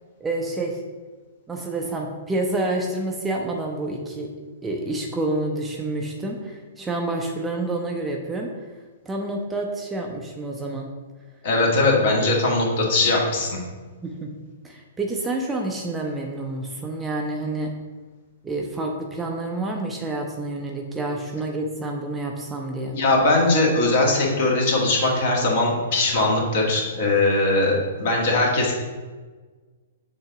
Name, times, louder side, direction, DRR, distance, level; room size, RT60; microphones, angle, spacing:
voice 1, 0.2-0.8 1.5-4.3 4.6-8.7 9.0-10.9 14.0-14.3 14.6-17.7 18.4-23.0, right 2 dB, 10° right, 0 dB, 0.7 m, -28 dB
voice 2, 11.4-13.6 22.9-28.8, left 2 dB, 50° left, -1 dB, 1.7 m, -20 dB
7.1 x 2.8 x 4.8 m, 1.4 s
figure-of-eight pair, 115°, 0 cm